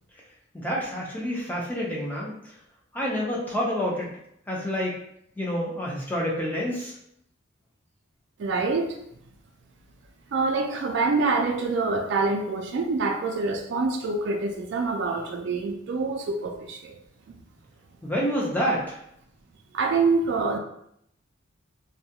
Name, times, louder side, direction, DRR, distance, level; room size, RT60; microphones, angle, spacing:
voice 1, 0.5-2.4 2.9-4.1 4.5-4.9 5.4-6.9 18.0-19.0, equal, 10° left, -4 dB, 0.4 m, -28 dB
voice 2, 8.4-9.0 10.3-17.0 19.7-20.6, right 3 dB, 55° right, 3 dB, 0.3 m, -26 dB
2.3 x 2.1 x 2.7 m, 0.73 s
head